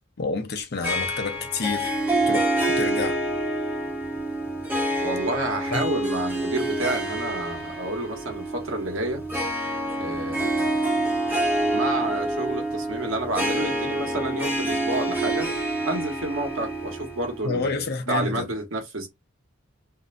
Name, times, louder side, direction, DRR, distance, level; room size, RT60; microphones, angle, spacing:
voice 1, 0.2-1.9 2.3-3.2 5.7-5.8 17.4-18.5, left 4 dB, 55° left, 0.6 m, -29 dB
Harp, 0.8-17.6, right 1 dB, 10° right, 0.9 m, -27 dB
voice 2, 5.0-9.2 10.0-10.8 11.6-15.5 15.8-19.1, right 2 dB, 80° right, 1.0 m, -29 dB
2.6 x 2.1 x 2.4 m
head